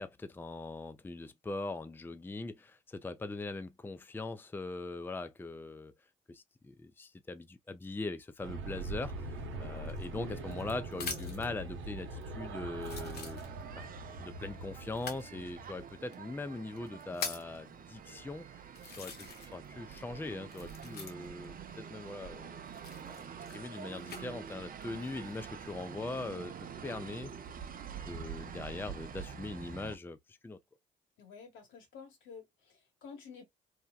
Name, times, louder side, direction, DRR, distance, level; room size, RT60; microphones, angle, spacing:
voice 1, 0.0-5.9 6.3-13.4 13.8-13.9 14.2-22.6 23.1-23.2 23.5-27.3 28.0-30.6, left 3 dB, 10° left, 0.4 m, -41 dB
sound 1, 8.4-16.1, right 2 dB, 80° right, 0.8 m, -42 dB
sound 2, 9.9-11.5 12.2-12.3 12.8-13.8 14.9-15.3 16.1-16.2 16.8-17.6 18.2-18.3 18.8-19.7 19.9-21.5 22.7-24.2 24.9-25.4, left 5 dB, 55° left, 1.1 m, -43 dB
sound 3, 13.4-30.0, right 7 dB, 45° right, 0.6 m, -47 dB
voice 2, 31.2-33.4, left 6 dB, 80° left, 1.3 m, -51 dB
2.8 x 2.1 x 2.3 m
supercardioid pair, 55°, 20 cm